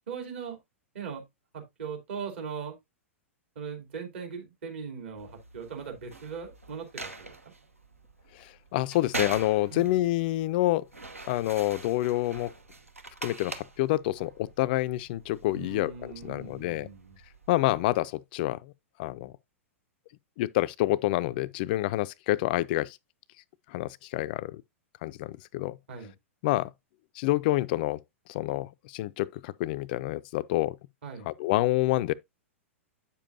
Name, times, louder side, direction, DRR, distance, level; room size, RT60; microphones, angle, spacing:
voice 1, 0.1-0.6 0.9-1.2 1.5-2.7 3.5-7.3 9.7-10.1 15.5-17.2 25.9-26.1 31.0-31.3, right 6 dB, 55° right, 3.0 m, -39 dB
sound 1, 5.2-18.0, right 3 dB, 80° right, 1.0 m, -44 dB
voice 2, 8.4-10.8 11.3-12.5 13.2-16.9 17.5-18.7 19.0-19.3 20.4-23.0 23.7-24.6 25.0-25.8 26.4-26.7 27.2-28.0 28.3-30.8 31.3-32.1, left 16 dB, 45° left, 0.4 m, -28 dB
8.6 x 6.9 x 2.6 m
figure-of-eight pair, 100°, 7 cm